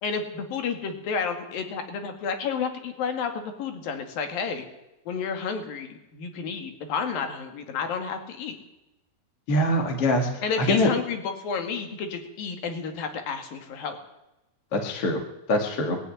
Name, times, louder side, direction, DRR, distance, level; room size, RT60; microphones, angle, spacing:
voice 1, 0.0-4.7 5.1-8.6 10.4-14.0, left 5 dB, 60° left, 6 dB, 3.7 m, -31 dB
voice 2, 9.5-10.9 14.7-15.2 15.5-16.0, left 1 dB, 40° left, 3 dB, 2.5 m, -23 dB
21.0 x 12.5 x 9.9 m, 0.93 s
omnidirectional pair, 5.0 m